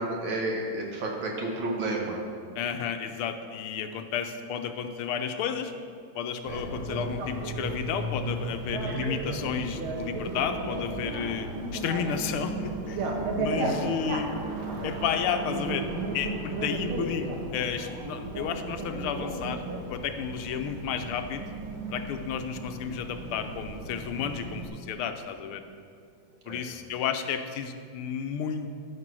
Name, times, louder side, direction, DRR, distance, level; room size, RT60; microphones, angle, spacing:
voice 1, 0.0-2.2 6.5-6.6 8.9-9.1 14.1-14.2 26.5-26.6, right 2 dB, 65° right, 0 dB, 2.2 m, -31 dB
voice 2, 2.6-5.7 6.1-14.3 14.8-19.6 19.9-21.4 21.9-25.6 26.4-28.8, left 7 dB, 85° left, 7 dB, 1.6 m, -32 dB
Bicycle, 6.5-24.7, right 2 dB, 80° right, 2.0 m, -34 dB
13.0 x 6.0 x 6.0 m, 2.2 s
omnidirectional pair, 2.3 m